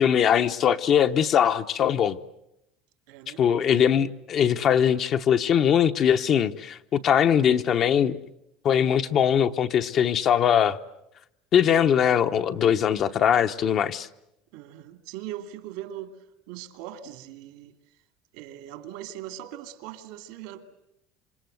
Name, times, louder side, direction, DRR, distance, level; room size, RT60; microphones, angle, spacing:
voice 1, 0.0-2.2 3.4-8.2 8.6-10.8 11.5-14.1, left 8 dB, 40° left, 0.9 m, -21 dB
voice 2, 3.1-3.4 14.5-17.7 18.3-20.7, right 12 dB, 75° right, 2.3 m, -40 dB
28.0 x 25.5 x 7.9 m
cardioid pair, 140°, 0 cm